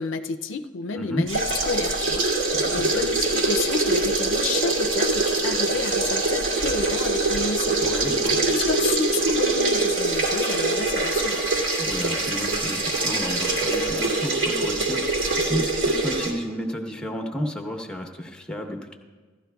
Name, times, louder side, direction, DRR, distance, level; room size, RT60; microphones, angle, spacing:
voice 1, 0.0-7.8 8.5-11.4, left 4 dB, 75° left, 7 dB, 0.5 m, -30 dB
voice 2, 1.0-1.3 2.6-2.9 7.8-8.4 11.8-18.9, equal, 5° left, 4 dB, 0.9 m, -31 dB
sound 1, 1.3-16.3, right 2 dB, 75° right, 2.4 m, -24 dB
16.0 x 12.5 x 2.3 m, 1.4 s
head